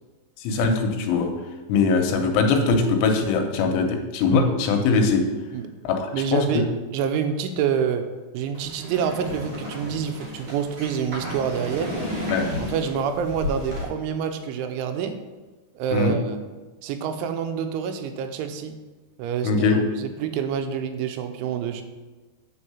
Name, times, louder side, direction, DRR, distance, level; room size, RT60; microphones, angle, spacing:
voice 1, 0.4-1.3 1.7-5.2 5.8-6.5 12.3-12.5 15.9-16.1 19.4-19.8, left 4 dB, 90° left, 4 dB, 3.3 m, -21 dB
voice 2, 6.1-6.7 6.9-8.1 8.3-11.9 12.6-15.1 15.8-16.4 16.8-18.7 19.2-21.8, right 7 dB, 85° right, 7 dB, 3.1 m, -27 dB
sound 1, 8.5-13.8, left 1 dB, 65° right, 1.2 m, -33 dB
8.5 x 4.6 x 7.0 m, 1.2 s
omnidirectional pair, 5.4 m